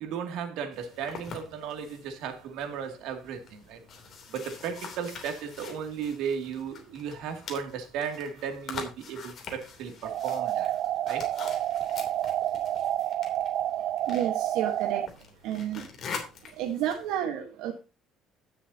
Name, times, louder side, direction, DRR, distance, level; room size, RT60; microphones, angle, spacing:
voice 1, 0.0-3.8 4.3-10.7 11.1-11.3, right 7 dB, 75° right, 2.4 m, -35 dB
sound 1, 0.7-17.2, left 5 dB, 40° left, 3.0 m, -45 dB
sound 2, 10.0-15.1, right 12 dB, 60° right, 0.4 m, -29 dB
voice 2, 14.1-15.1 15.4-15.9 16.6-17.8, right 10 dB, 90° right, 1.3 m, -31 dB
17.0 x 7.0 x 2.8 m
cardioid pair, 145°, 0 cm